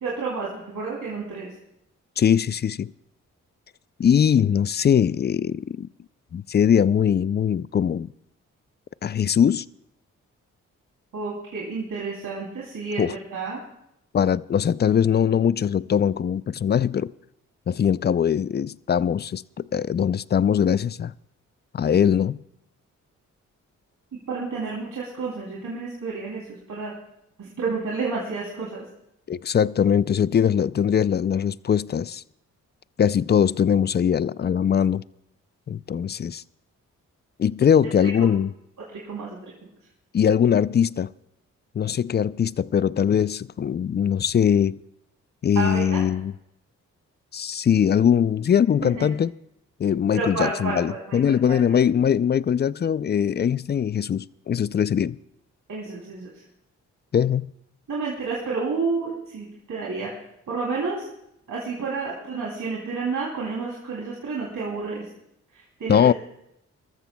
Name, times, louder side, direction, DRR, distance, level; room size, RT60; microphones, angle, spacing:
voice 1, 0.0-1.5 11.1-13.6 24.3-26.9 27.4-28.8 38.0-38.3 38.9-39.5 45.5-46.0 48.9-49.1 50.1-51.6 55.7-56.4 57.9-60.1 60.5-61.1 61.5-65.1 65.5-66.1, right 4 dB, 65° right, 3.0 m, -30 dB
voice 2, 2.2-2.9 4.0-5.9 6.3-8.1 9.0-9.6 13.0-13.2 14.1-17.1 17.7-21.1 21.7-22.4 29.3-32.2 33.0-35.0 35.7-36.4 37.4-38.5 40.1-41.1 41.8-44.8 45.4-46.3 47.3-49.3 49.8-55.2 57.1-57.5 65.9-66.1, left 8 dB, 30° left, 0.4 m, -21 dB
24.5 x 13.5 x 2.2 m
supercardioid pair, 50°, 33 cm